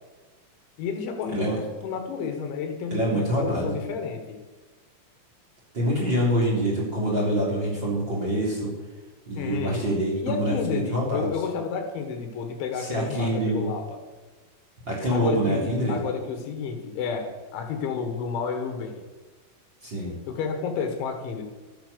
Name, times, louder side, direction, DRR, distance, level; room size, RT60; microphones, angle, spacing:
voice 1, 0.8-4.4 9.4-14.0 15.1-19.0 20.3-21.4, left 6 dB, 75° left, 5 dB, 3.6 m, -31 dB
voice 2, 1.3-1.6 2.9-3.8 5.7-8.7 9.3-11.3 12.7-13.7 14.8-16.0 19.8-20.1, right 1 dB, 25° right, -4 dB, 3.2 m, -25 dB
12.5 x 10.5 x 6.7 m, 1.3 s
omnidirectional pair, 5.7 m